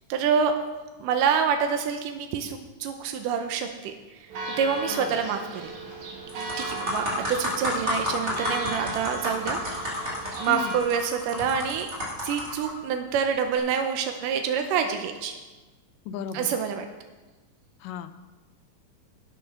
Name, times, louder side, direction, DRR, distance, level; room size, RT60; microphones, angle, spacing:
voice 1, 0.1-0.5 1.0-4.2 4.6-5.7 6.4-9.6 10.4-11.9 12.2-15.3 16.3-16.9, right 7 dB, 85° right, 5 dB, 2.4 m, -27 dB
Church bell, 4.3-10.8, right 2 dB, 65° right, 3.0 m, -36 dB
sound 1, 5.7-5.9 6.3-12.7 13.4-13.6, left 1 dB, 25° right, 3.5 m, -31 dB
voice 2, 10.5-10.8 16.1-16.5 17.8-18.1, left 8 dB, 90° left, 9 dB, 2.4 m, -35 dB
11.5 x 9.0 x 6.0 m, 1.2 s
omnidirectional pair, 3.8 m